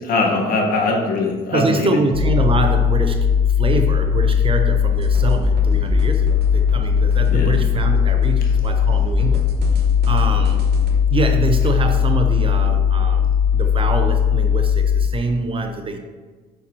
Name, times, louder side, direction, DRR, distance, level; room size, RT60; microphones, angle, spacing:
voice 1, 0.0-1.9 7.3-7.5, left 3 dB, 60° left, 1 dB, 1.4 m, -21 dB
voice 2, 1.5-3.3 3.6-9.5 10.1-10.6 11.1-16.0, right 3 dB, 30° right, 6 dB, 0.6 m, -24 dB
sound 1, 2.1-15.1, left 7 dB, 80° left, 0.8 m, -18 dB
sound 2, 4.9-10.9, right 3 dB, 75° right, 1.0 m, -31 dB
8.1 x 5.9 x 2.9 m, 1.4 s
cardioid pair, 110°, 17 cm